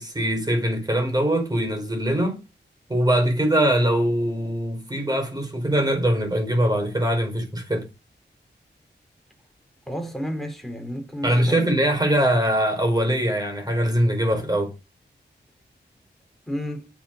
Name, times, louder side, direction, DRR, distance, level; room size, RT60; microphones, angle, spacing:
voice 1, 0.0-2.4 2.9-7.9 11.2-14.7, right 1 dB, 20° right, 4.8 m, -22 dB
voice 2, 9.9-11.7 16.5-16.9, equal, ahead, 4.0 m, -31 dB
8.7 x 7.7 x 6.6 m
wide cardioid pair, 105°, 19 cm